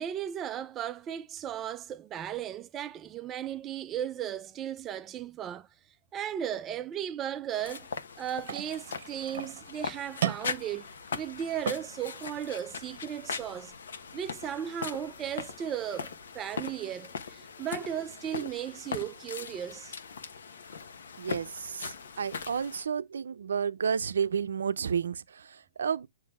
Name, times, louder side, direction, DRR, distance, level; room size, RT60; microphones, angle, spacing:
voice 1, 0.0-5.7 6.1-7.9 8.2-10.9 11.1-13.7 14.1-20.0, right 10 dB, 20° right, 0.4 m, -36 dB
sound 1, 7.5-22.8, left 6 dB, 75° left, 1.1 m, -40 dB
sound 2, 8.4-16.4, right 10 dB, 55° right, 0.9 m, -40 dB
voice 2, 21.2-26.1, right 7 dB, 80° right, 0.5 m, -31 dB
7.6 x 3.1 x 4.7 m
hypercardioid pair, 150°, 0 cm